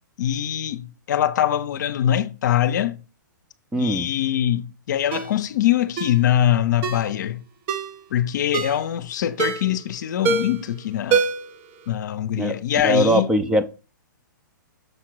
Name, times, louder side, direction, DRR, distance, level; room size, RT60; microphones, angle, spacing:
voice 1, 0.2-3.0 3.7-7.4 8.1-11.3 11.9-13.3, left 11 dB, 60° left, 0.6 m, -23 dB
voice 2, 3.7-4.1 12.4-12.6 12.8-13.6, right 1 dB, 5° right, 0.5 m, -20 dB
Ringtone, 5.1-5.3 6.0-6.2 6.8-7.1 7.7-8.0 8.5-8.8 9.4-9.8 10.2-10.6 11.1-11.6 11.9-12.0, right 5 dB, 35° right, 0.8 m, -24 dB
6.7 x 3.7 x 4.6 m
hypercardioid pair, 135°, 11 cm